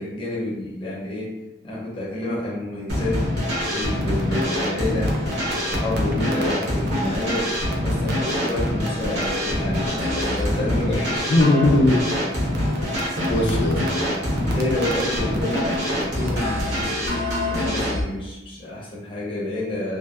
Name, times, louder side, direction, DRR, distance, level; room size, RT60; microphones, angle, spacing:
voice 1, 0.0-1.3 1.6-3.2 3.7-5.2 5.5-7.5 7.8-11.3 12.7-12.9 13.2-13.5 14.3-15.7 16.0-20.0, left 1 dB, 30° left, -6 dB, 0.5 m, -29 dB
sound 1, 2.9-18.0, left 1 dB, 80° right, 0.8 m, -24 dB
sound 2, 3.3-16.8, right 2 dB, 65° right, 0.4 m, -38 dB
voice 2, 11.3-12.1 12.8-14.1, left 1 dB, 85° left, 0 dB, 0.5 m, -20 dB
2.6 x 2.1 x 2.3 m, 0.96 s
head